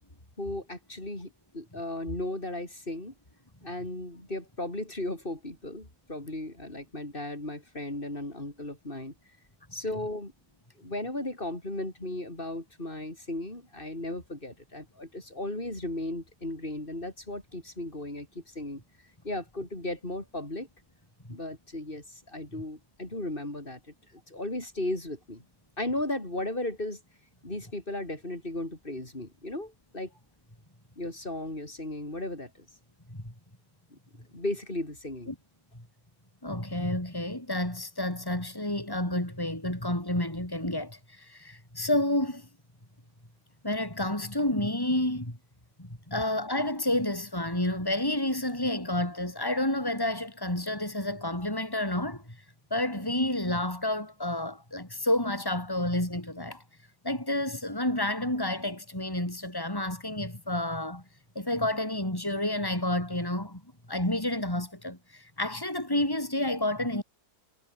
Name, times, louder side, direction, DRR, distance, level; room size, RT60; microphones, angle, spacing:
voice 1, 0.4-3.1 3.6-9.1 9.7-10.3 10.8-18.8 19.2-20.7 21.3-23.8 24.1-25.4 25.8-27.0 27.4-30.1 31.0-32.7 33.9-34.0 34.3-35.3, left 1 dB, 30° left, 6.3 m, -36 dB
voice 2, 36.4-42.5 43.6-45.4 45.8-52.4 52.7-56.6 57.0-61.0 61.3-63.6 63.9-67.0, left 1 dB, 10° left, 5.9 m, -30 dB
omnidirectional pair, 1.8 m